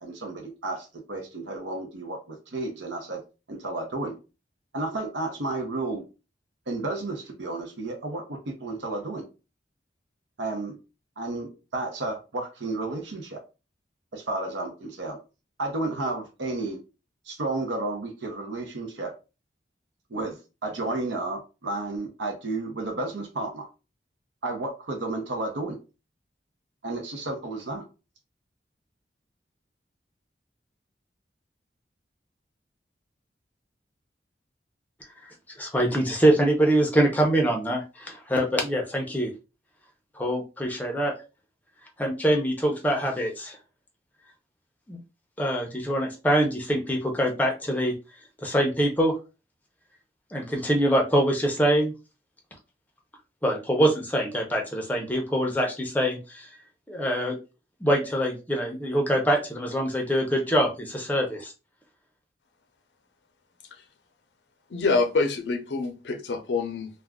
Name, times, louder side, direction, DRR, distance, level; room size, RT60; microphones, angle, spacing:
voice 1, 0.0-3.2 3.5-4.2 4.7-6.0 6.7-9.2 10.4-10.8 11.2-13.4 14.1-15.2 15.6-16.8 17.3-19.1 20.1-20.4 20.6-23.7 24.4-25.8 26.8-27.8, right 2 dB, 85° right, 0.6 m, -32 dB
voice 2, 35.6-39.3 40.2-41.1 42.0-43.6 44.9-45.0 45.4-47.9 48.4-49.1 50.3-51.9 53.4-56.5 56.9-57.4 57.8-61.5, right 1 dB, 10° left, 0.5 m, -24 dB
voice 3, 64.7-66.9, left 3 dB, 80° left, 0.5 m, -26 dB
2.4 x 2.1 x 3.5 m
head